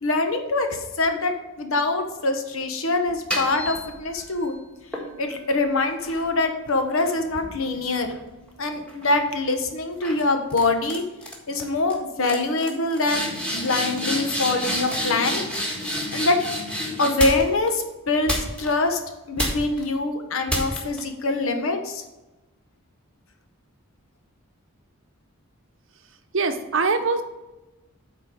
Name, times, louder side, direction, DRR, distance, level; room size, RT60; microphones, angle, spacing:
voice 1, 0.0-4.5 5.2-8.1 8.6-11.0 11.5-15.5 16.1-16.4 17.0-19.0 19.3-22.0, left 2 dB, 75° left, 6 dB, 1.1 m, -24 dB
sound 1, 3.1-4.3 4.9-8.5 8.9-9.3 10.0-10.2 10.5-11.0 11.2-11.6 11.9-12.0 12.2-17.7 18.3-18.9 19.4-19.8 20.5-21.0, equal, 5° left, 1.5 m, -30 dB
voice 2, 26.3-27.2, right 4 dB, 60° right, 7 dB, 0.8 m, -22 dB
8.2 x 4.4 x 6.2 m, 1.0 s
head